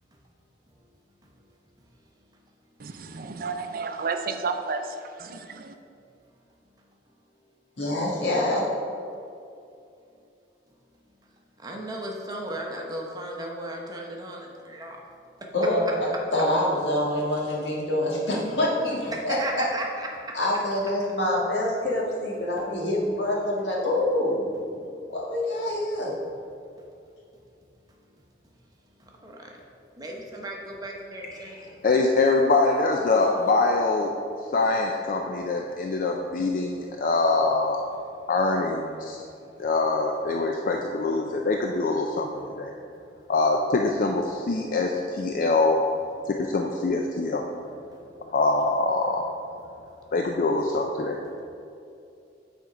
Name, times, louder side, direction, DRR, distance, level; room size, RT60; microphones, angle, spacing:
voice 1, 2.8-5.7, right 4 dB, 55° right, 7 dB, 0.5 m, -32 dB
voice 2, 7.8-8.6 15.5-19.4 20.3-24.8 25.1-26.1, left 1 dB, 80° left, -4 dB, 1.8 m, -26 dB
voice 3, 11.6-15.0 15.4-15.5 19.1-20.4 23.2-23.4 29.0-31.7 33.2-33.5, right 1 dB, 20° right, 0 dB, 0.9 m, -36 dB
voice 4, 31.4-34.1 34.5-37.8 38.3-39.2 39.6-42.3 42.6-42.7 43.3-45.8 46.3-47.4 48.3-49.3 50.1-51.2, left 3 dB, 50° left, 2 dB, 0.4 m, -24 dB
8.2 x 4.4 x 5.0 m, 2.6 s
head